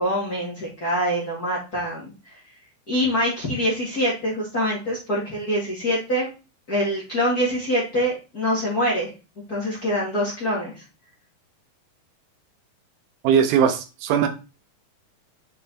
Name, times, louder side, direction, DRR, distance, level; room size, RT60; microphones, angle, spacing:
voice 1, 0.0-2.1 2.9-6.3 6.7-9.1 9.5-10.8, equal, 35° left, -5 dB, 1.8 m, -24 dB
voice 2, 13.2-14.3, right 8 dB, 80° right, 7 dB, 2.4 m, -19 dB
6.8 x 5.1 x 2.8 m, 0.30 s
omnidirectional pair, 4.4 m